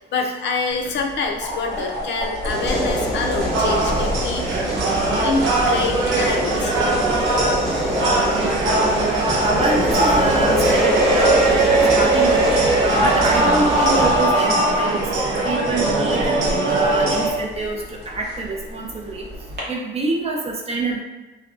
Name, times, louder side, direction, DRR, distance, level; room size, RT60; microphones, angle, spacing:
voice 1, 0.0-7.9, left 4 dB, 65° left, 2 dB, 0.4 m, -27 dB
sound 1, 0.7-19.6, left 1 dB, 55° right, 0.9 m, -34 dB
sound 2, 2.5-14.1, equal, ahead, 0.8 m, -23 dB
sound 3, 3.5-17.3, right 2 dB, 80° right, 0.6 m, -20 dB
voice 2, 9.0-11.7 11.9-12.6 12.9-16.4 16.7-19.3 19.7-21.0, right 3 dB, 30° right, -1 dB, 0.5 m, -26 dB
2.5 x 2.2 x 2.4 m, 1.2 s
cardioid pair, 90°, 20 cm